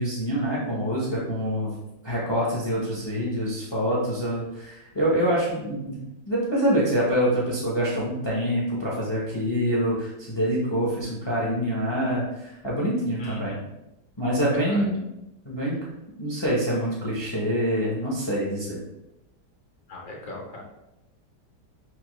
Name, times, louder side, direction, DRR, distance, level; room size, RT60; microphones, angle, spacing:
voice 1, 0.0-1.7 2.0-13.5 14.2-15.0 15.4-15.8 16.2-18.8, equal, 30° left, -5 dB, 0.5 m, -26 dB
voice 2, 13.2-13.7 14.5-14.9 19.9-20.6, left 1 dB, 70° left, -1 dB, 1.4 m, -38 dB
5.8 x 2.2 x 3.0 m, 0.90 s
omnidirectional pair, 1.8 m